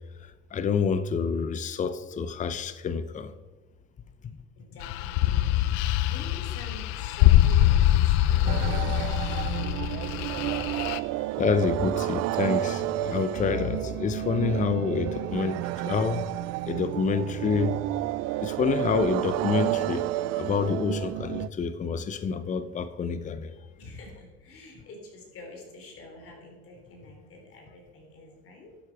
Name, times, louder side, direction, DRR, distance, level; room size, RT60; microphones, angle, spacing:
voice 1, 0.2-3.3 4.2-4.4 11.4-16.2 16.7-17.8 18.4-20.1 20.4-23.5, left 6 dB, 25° left, 0.7 m, -28 dB
voice 2, 4.6-10.0 23.8-28.7, left 2 dB, 45° left, 4.0 m, -47 dB
sound 1, 4.8-11.0, left 13 dB, 65° left, 0.7 m, -23 dB
sound 2, 8.5-21.5, right 16 dB, 55° right, 0.4 m, -30 dB
12.5 x 8.0 x 4.9 m
supercardioid pair, 105°, 30 cm